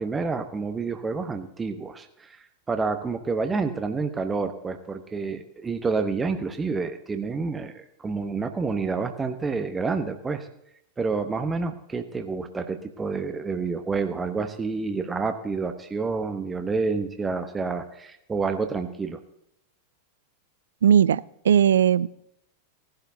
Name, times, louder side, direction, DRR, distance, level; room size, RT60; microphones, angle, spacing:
voice 1, 0.0-2.4 2.7-10.5 11.0-19.2, right 4 dB, 15° right, 7 dB, 1.0 m, -28 dB
voice 2, 20.8-22.1, right 9 dB, 65° right, 21 dB, 0.3 m, -18 dB
18.0 x 11.5 x 2.7 m, 0.79 s
figure-of-eight pair, 90°, 0 cm